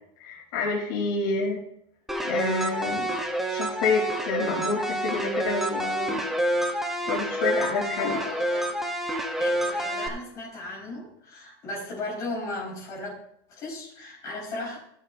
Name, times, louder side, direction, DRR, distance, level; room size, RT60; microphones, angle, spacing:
voice 1, 0.2-1.6 2.2-3.1 3.5-6.2 7.1-8.1, left 4 dB, 70° left, -2 dB, 3.2 m, -28 dB
sound 1, 2.1-10.1, right 1 dB, 5° right, 0.7 m, -28 dB
voice 2, 8.0-8.8 9.4-13.1 13.5-14.8, left 2 dB, 30° left, -4 dB, 4.8 m, -36 dB
16.0 x 8.0 x 2.6 m, 0.70 s
cardioid pair, 175°, 11 cm